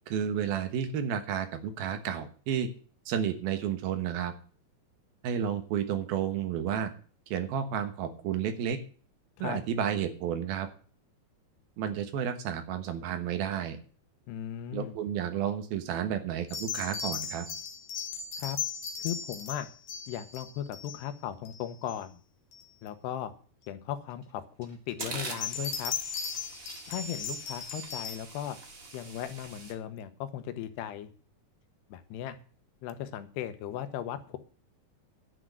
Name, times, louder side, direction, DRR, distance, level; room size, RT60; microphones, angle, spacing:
voice 1, 0.1-2.7 3.1-4.3 5.2-6.9 7.3-8.8 9.4-10.7 11.8-13.8 14.7-17.5, right 8 dB, 70° right, 8 dB, 3.0 m, -31 dB
voice 2, 14.3-15.0 18.4-18.6 19.0-19.7 20.1-22.2 22.8-23.3 23.7-25.9 26.9-28.6 28.9-31.1 31.9-32.4 32.8-34.4, left 10 dB, 90° left, 10 dB, 3.1 m, -37 dB
sound 1, 16.5-21.0 21.5-22.0 22.5-22.6 25.2-28.2, left 6 dB, 75° left, 3.5 m, -37 dB
sound 2, 24.1-24.2 24.6-29.7, right 3 dB, 45° right, 1.1 m, -43 dB
10.5 x 6.2 x 7.8 m, 0.41 s
omnidirectional pair, 4.7 m